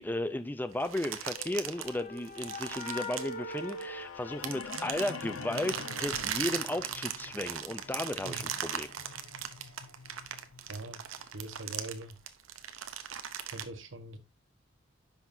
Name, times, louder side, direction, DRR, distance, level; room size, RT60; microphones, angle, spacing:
voice 1, 0.0-8.9, left 1 dB, 10° left, 0.5 m, -35 dB
sound 1, 0.8-4.0 4.4-13.6, right 9 dB, 85° right, 0.9 m, -38 dB
sound 2, 1.2-5.1, left 2 dB, 45° left, 1.6 m, -43 dB
sound 3, 3.4-11.5, left 5 dB, 90° left, 0.8 m, -46 dB
voice 2, 10.7-11.1 11.3-12.2 13.4-14.2, right 2 dB, 70° right, 1.3 m, -42 dB
10.5 x 5.9 x 2.7 m
head